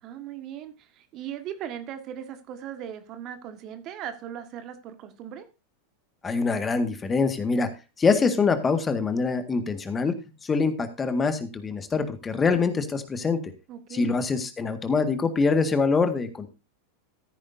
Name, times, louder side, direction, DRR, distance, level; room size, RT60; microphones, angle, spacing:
voice 1, 0.0-5.4 13.7-14.2, right 10 dB, 45° right, 9 dB, 1.6 m, -38 dB
voice 2, 6.2-7.7 8.0-13.4 13.9-16.5, left 4 dB, 20° left, 8 dB, 1.7 m, -24 dB
14.5 x 9.8 x 2.7 m, 0.28 s
hypercardioid pair, 95°, 0 cm